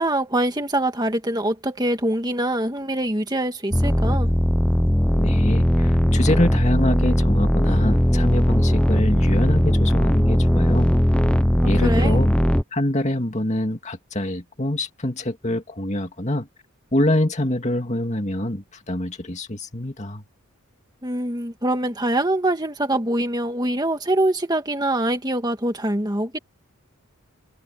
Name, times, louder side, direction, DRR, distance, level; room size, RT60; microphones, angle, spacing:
voice 1, 0.0-4.3 11.6-12.2 21.0-26.4, right 1 dB, 20° right, 2.0 m, -24 dB
sound 1, 3.7-12.6, equal, 5° left, 0.8 m, -18 dB
voice 2, 5.2-10.9 11.6-12.3 12.7-16.5 16.9-20.2, left 1 dB, 30° left, 2.3 m, -25 dB
head